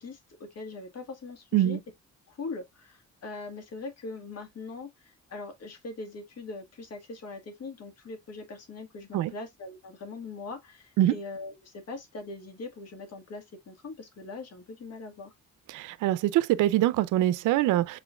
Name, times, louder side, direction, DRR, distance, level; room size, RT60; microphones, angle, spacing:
voice 1, 0.0-1.8 2.3-15.3, left 3 dB, 55° left, 1.7 m, -41 dB
voice 2, 15.7-18.0, right 14 dB, 80° right, 0.5 m, -24 dB
6.0 x 3.7 x 2.3 m
cardioid pair, 90°, 30 cm